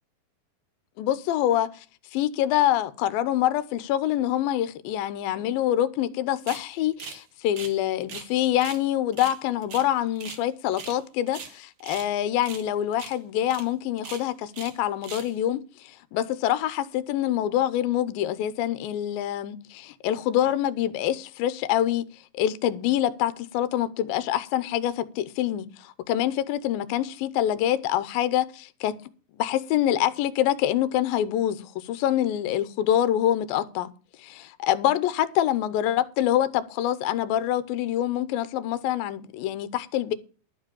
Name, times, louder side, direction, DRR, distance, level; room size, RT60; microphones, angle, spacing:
voice 1, 1.0-1.9 2.1-22.1 22.4-28.9 29.4-33.9 34.2-40.1, left 12 dB, 85° left, 2.5 m, -25 dB
sound 1, 6.5-6.7 7.0-7.2 7.5-8.3 8.6-8.8 9.1-10.4 10.7-11.0 11.3-12.1 12.4-12.7 12.9-13.2 13.5-13.6 14.0-14.8 15.0-15.3, right 6 dB, 55° right, 1.5 m, -40 dB
12.0 x 5.0 x 8.6 m
omnidirectional pair, 4.2 m